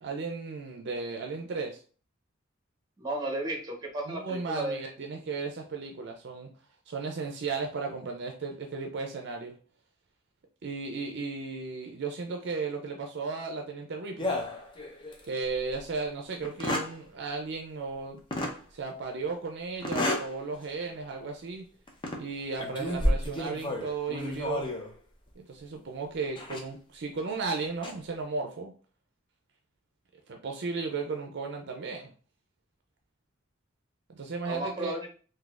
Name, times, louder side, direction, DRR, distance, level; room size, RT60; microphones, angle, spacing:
voice 1, 0.0-1.8 4.1-6.5 6.9-9.5 10.6-14.4 15.2-18.2 18.7-21.6 22.2-24.7 25.4-28.7 30.3-32.1 34.1-35.0, right 4 dB, 55° right, 3 dB, 0.5 m, -35 dB
voice 2, 3.0-4.8 34.5-35.1, right 1 dB, 20° right, 1 dB, 0.9 m, -33 dB
sound 1, 14.2-15.3 15.7-15.8 16.4-17.0 18.3-18.6 19.8-20.3 20.8-21.0 21.9-22.2 22.6-24.9 26.4-26.6 27.6-27.9, left 1 dB, 25° left, 0.6 m, -31 dB
3.9 x 2.6 x 2.4 m, 0.39 s
head